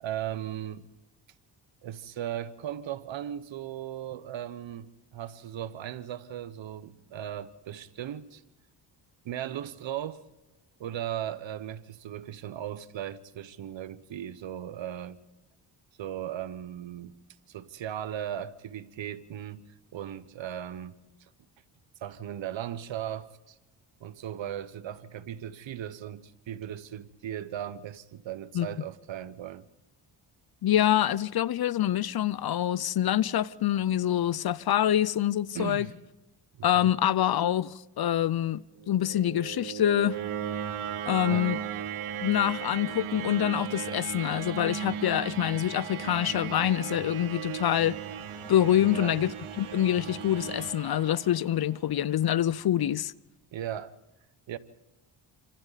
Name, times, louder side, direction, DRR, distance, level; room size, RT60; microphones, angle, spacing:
voice 1, 0.0-0.9 1.8-8.4 9.2-10.2 10.8-15.2 16.0-17.2 17.5-21.0 22.0-23.6 24.0-29.7 35.5-35.9 36.6-36.9 41.3-41.5 48.8-49.2 53.5-53.9 54.5-54.6, right 11 dB, 65° right, 1.1 m, -37 dB
voice 2, 30.6-35.9 36.6-40.2 41.1-41.6 42.2-48.0 48.5-49.3 49.6-53.1, left 11 dB, 50° left, 0.7 m, -26 dB
sound 1, 38.8-51.8, right 9 dB, 85° right, 1.8 m, -36 dB
28.0 x 25.0 x 4.1 m
cardioid pair, 65°, 48 cm